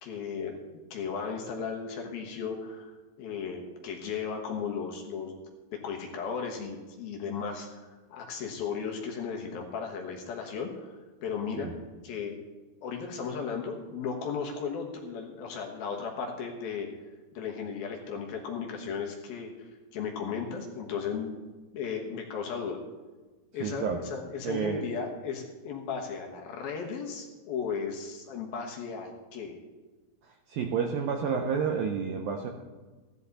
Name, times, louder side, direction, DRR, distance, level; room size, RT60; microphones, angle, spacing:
voice 1, 0.0-0.6 0.9-5.4 5.7-11.7 12.0-12.4 12.8-16.9 17.3-21.3 21.7-22.8 23.5-29.5, left 6 dB, 65° left, 1 dB, 2.9 m, -35 dB
voice 2, 23.6-24.0 24.4-24.9 30.2-32.5, right 6 dB, 75° right, 3 dB, 2.1 m, -30 dB
16.0 x 12.0 x 4.1 m, 1.3 s
omnidirectional pair, 5.1 m